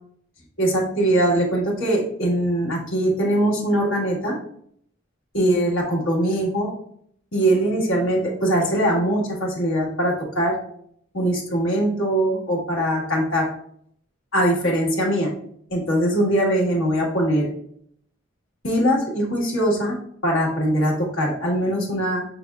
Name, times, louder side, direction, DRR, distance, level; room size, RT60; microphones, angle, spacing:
voice 1, 0.6-4.4 5.3-6.7 7.3-10.5 11.1-13.5 14.3-15.3 15.7-17.5 18.6-20.0 20.2-22.2, right 1 dB, 75° left, -3 dB, 1.5 m, -21 dB
6.0 x 3.4 x 2.4 m, 0.65 s
head